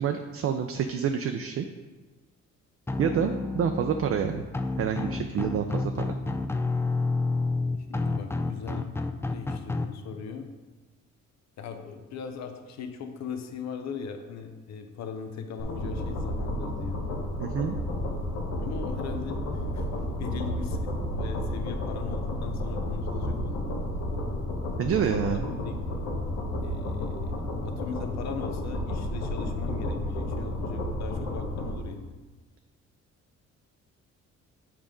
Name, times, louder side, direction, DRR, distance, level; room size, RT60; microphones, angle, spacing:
voice 1, 0.0-1.7 3.0-4.4 4.8-6.2 17.4-17.8 24.8-25.5, right 8 dB, 50° right, 6 dB, 0.5 m, -28 dB
sound 1, 2.9-9.9, left 3 dB, 10° left, 0.4 m, -29 dB
voice 2, 7.9-10.5 11.6-17.0 18.6-23.7 24.8-25.9 26.6-32.0, left 6 dB, 65° left, 6 dB, 0.8 m, -39 dB
sound 2, 15.6-31.7, left 1 dB, 85° left, 1.3 m, -31 dB
7.2 x 5.0 x 3.7 m, 1.3 s
cardioid pair, 90°, 30 cm